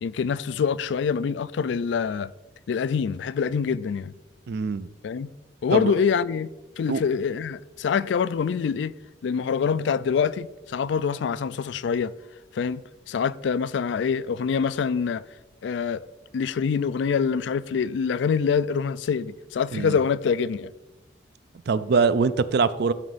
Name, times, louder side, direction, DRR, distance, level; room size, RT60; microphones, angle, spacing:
voice 1, 0.0-2.3 2.7-4.1 5.0-5.3 5.6-6.5 6.8-8.9 9.2-12.1 12.5-12.8 13.1-15.2 15.6-16.0 16.3-20.7, left 6 dB, 70° left, 0.3 m, -25 dB
voice 2, 4.5-4.9 5.7-5.9 6.9-7.0 19.7-20.0 21.7-22.9, right 4 dB, 60° right, 0.4 m, -23 dB
12.5 x 4.6 x 4.1 m
head